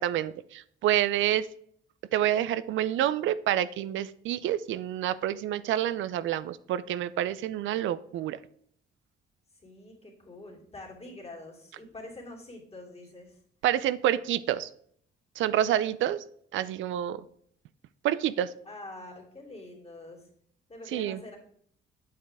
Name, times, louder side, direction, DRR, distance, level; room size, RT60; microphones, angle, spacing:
voice 1, 0.0-1.5 2.1-8.4 13.6-14.7 15.4-16.2 16.5-17.2 18.0-18.5 20.9-21.2, right 11 dB, 75° right, 15 dB, 0.4 m, -28 dB
voice 2, 9.6-13.4 18.6-20.3 20.7-21.4, left 2 dB, 30° left, -1 dB, 2.8 m, -45 dB
8.5 x 6.6 x 3.5 m, 0.63 s
cardioid pair, 90°, 20 cm